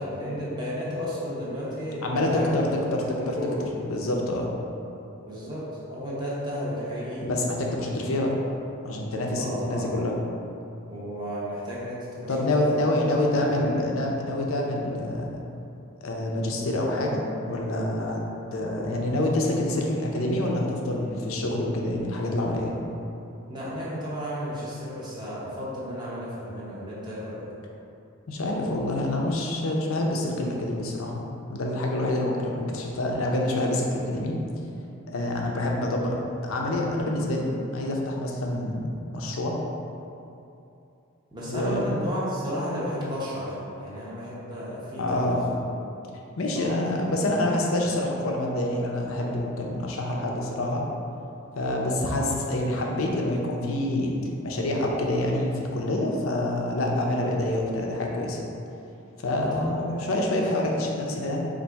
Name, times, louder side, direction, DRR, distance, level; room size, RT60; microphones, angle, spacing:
voice 1, 0.0-3.6 5.3-7.3 9.3-9.9 10.9-12.5 12.7-13.0 13.4-13.9 23.5-27.4 35.5-35.7 41.3-45.8 46.5-47.6 59.4-60.4, equal, 20° right, -8 dB, 0.9 m, -33 dB
voice 2, 2.0-3.4 3.8-4.5 7.2-8.4 8.8-10.2 12.3-15.4 16.0-18.2 18.5-22.7 28.3-31.2 31.5-34.3 35.1-37.5 37.7-39.6 41.5-41.9 45.0-45.5 46.4-50.8 51.6-54.2 54.4-58.4 59.2-61.5, left 1 dB, 75° left, -1 dB, 0.6 m, -27 dB
4.0 x 2.6 x 4.5 m, 2.8 s
head